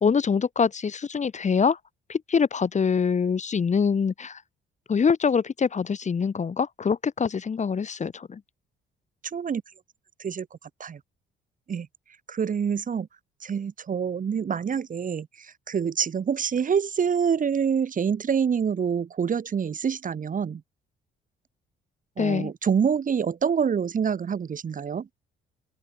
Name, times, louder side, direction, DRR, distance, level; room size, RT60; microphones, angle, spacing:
voice 1, 0.0-1.8 2.1-4.4 4.9-8.4 22.2-22.5, left 6 dB, 35° left, 1.4 m, -24 dB
voice 2, 9.2-9.6 10.2-10.5 10.8-11.0 11.7-11.9 12.3-13.1 13.4-20.6 22.2-25.1, right 7 dB, 40° right, 1.3 m, -26 dB
open air
cardioid pair, 90°, 20 cm